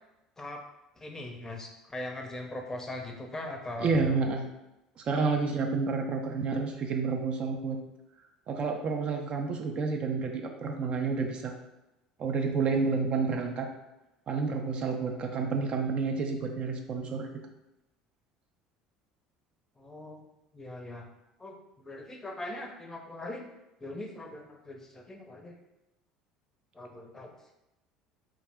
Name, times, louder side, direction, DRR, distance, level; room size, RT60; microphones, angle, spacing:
voice 1, 1.0-4.3 19.8-20.3 20.5-21.1 21.4-23.4 23.8-25.6 26.7-27.3, left 1 dB, 20° left, 2 dB, 0.5 m, -40 dB
voice 2, 3.8-4.5 5.0-7.8 8.5-11.6 12.2-13.7 14.3-17.3, right 4 dB, 45° right, 3 dB, 0.4 m, -29 dB
2.3 x 2.0 x 3.4 m, 0.93 s
hypercardioid pair, 70°, 3 cm